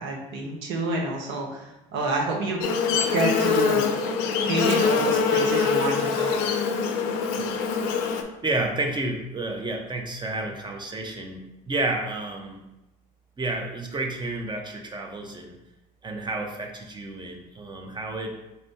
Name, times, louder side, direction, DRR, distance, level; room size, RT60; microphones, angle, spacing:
voice 1, 0.0-3.8 4.4-6.4, right 2 dB, 65° right, -1 dB, 0.9 m, -28 dB
Buzz, 2.6-8.2, left 5 dB, 75° left, 0.5 m, -24 dB
voice 2, 8.4-12.6 13.4-15.6 16.0-18.4, right 2 dB, 20° right, 2 dB, 0.8 m, -30 dB
4.3 x 2.6 x 3.4 m, 0.98 s
hypercardioid pair, 70°, 21 cm